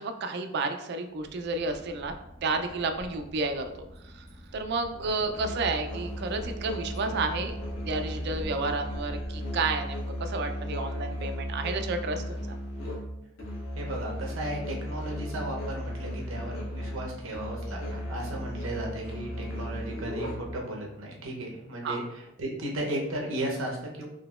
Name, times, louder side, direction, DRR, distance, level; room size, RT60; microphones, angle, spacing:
voice 1, 0.0-2.1 2.4-3.7 4.0-4.2 4.5-7.6 7.8-12.6 21.8-22.0, right 3 dB, 55° right, 6 dB, 0.3 m, -31 dB
Boat Water vehicle / Engine, 1.1-10.0, equal, 20° left, 1.3 m, -48 dB
Musical instrument, 5.3-20.6, equal, 80° left, 1.2 m, -35 dB
voice 2, 13.7-24.0, right 1 dB, 75° right, 0 dB, 0.7 m, -35 dB
3.8 x 2.9 x 2.3 m, 0.86 s
head